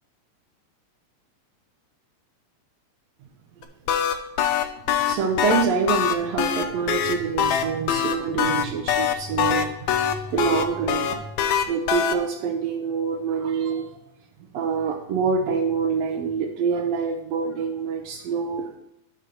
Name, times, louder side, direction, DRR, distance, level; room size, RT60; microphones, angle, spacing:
sound 1, 3.6-12.1, left 9 dB, 80° left, 1.8 m, -22 dB
voice 1, 4.7-11.2 11.7-13.9 14.5-18.7, right 5 dB, 80° right, 4 dB, 1.5 m, -26 dB
5.2 x 4.5 x 6.1 m, 0.79 s
omnidirectional pair, 3.5 m